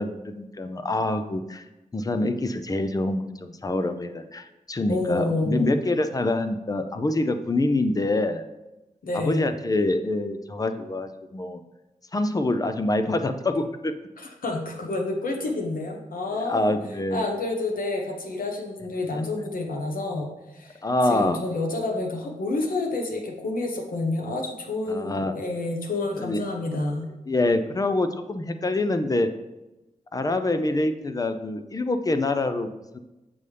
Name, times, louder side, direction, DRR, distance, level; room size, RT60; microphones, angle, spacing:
voice 1, 0.0-1.6 1.9-8.4 9.1-11.6 12.1-13.9 16.5-17.3 19.1-19.2 20.8-21.4 24.9-25.3 26.2-26.4 27.3-29.3 30.1-33.0, left 2 dB, 25° left, 9 dB, 0.5 m, -26 dB
voice 2, 4.9-5.7 9.0-9.4 14.2-16.7 17.1-20.8 21.1-27.1, left 2 dB, 90° left, 1 dB, 1.1 m, -29 dB
7.0 x 5.4 x 3.3 m, 1.0 s
wide cardioid pair, 115°, 14 cm